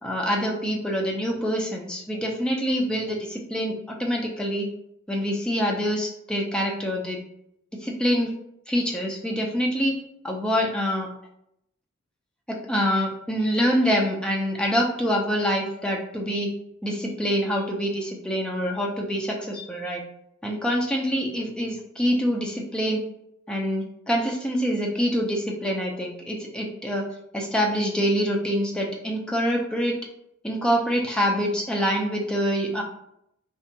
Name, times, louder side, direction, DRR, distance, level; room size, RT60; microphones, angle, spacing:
voice 1, 0.0-4.7 5.1-7.2 7.8-8.3 8.7-9.9 10.2-11.1 12.5-16.5 16.8-20.0 20.4-23.0 23.5-27.1 27.3-29.9 30.4-32.8, equal, 5° left, -1 dB, 0.3 m, -25 dB
2.6 x 2.1 x 2.6 m, 0.77 s
head